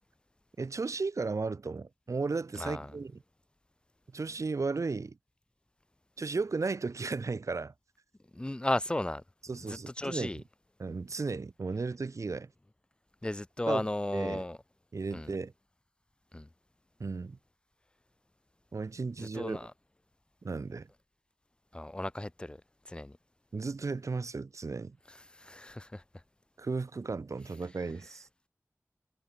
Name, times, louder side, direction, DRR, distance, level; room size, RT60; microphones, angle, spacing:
voice 1, 0.6-3.2 4.1-5.2 6.2-7.7 9.5-10.4 10.8-12.5 13.7-13.8 14.1-14.4 14.9-15.5 17.0-17.4 18.7-19.6 20.4-20.9 23.5-25.0 26.6-28.3, right 4 dB, 80° right, 1.7 m, -35 dB
voice 2, 2.6-2.9 8.3-9.2 9.7-10.4 13.2-14.6 15.1-15.3 16.3-16.5 19.2-19.7 21.7-22.6 22.9-23.2 25.3-26.0, left 1 dB, 20° left, 0.5 m, -35 dB
wide cardioid pair, 55°, 5 cm